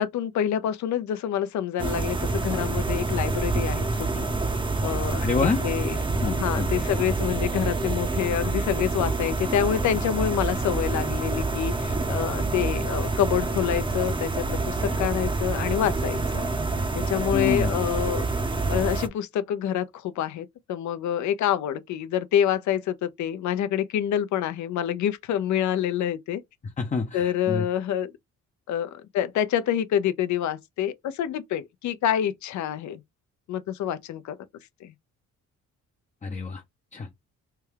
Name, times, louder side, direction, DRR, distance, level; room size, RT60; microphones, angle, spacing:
voice 1, 0.0-4.3 4.8-6.0 6.2-16.4 16.9-18.2 18.7-26.4 27.1-28.1 28.7-33.0 33.5-34.4 34.8-34.9, left 10 dB, 70° left, 0.6 m, -27 dB
sound 1, 1.8-19.1, right 3 dB, 15° right, 0.6 m, -27 dB
voice 2, 5.2-5.6 6.2-6.7 17.3-17.8 26.8-27.6 36.2-36.6 36.9-37.1, left 4 dB, 25° left, 0.6 m, -27 dB
3.3 x 2.3 x 3.2 m
cardioid pair, 90°, 30 cm